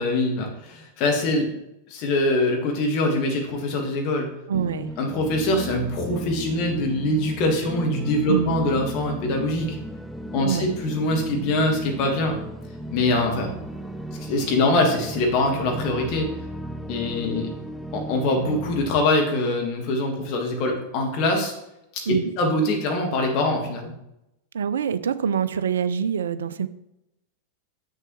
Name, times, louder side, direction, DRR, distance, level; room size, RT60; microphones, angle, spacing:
voice 1, 0.0-1.5 1.9-4.3 5.0-9.8 10.3-12.4 12.9-13.5 14.2-16.3 16.9-17.5 17.9-21.5 21.9-22.0 22.4-23.9, left 2 dB, 40° left, 1 dB, 1.6 m, -23 dB
sound 1, 4.5-18.9, right 1 dB, ahead, 0.4 m, -35 dB
voice 2, 4.5-4.9 8.3-8.7 10.4-10.7 22.1-22.3 24.5-26.7, right 7 dB, 65° right, 14 dB, 0.3 m, -25 dB
7.2 x 6.5 x 3.1 m, 0.85 s
figure-of-eight pair, 90°, 0 cm